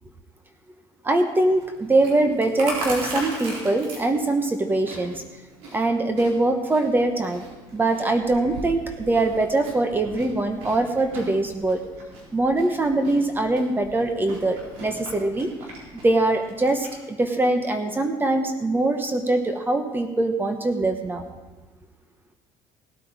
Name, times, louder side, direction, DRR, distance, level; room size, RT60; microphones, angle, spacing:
voice 1, 1.0-5.2 5.7-11.8 12.3-15.5 16.0-21.3, right 2 dB, 20° right, 6 dB, 1.1 m, -23 dB
Chewing mastication, 1.4-17.0, right 2 dB, 70° right, 4.2 m, -39 dB
17.0 x 8.5 x 4.9 m, 1.2 s
supercardioid pair, 105°, 11 cm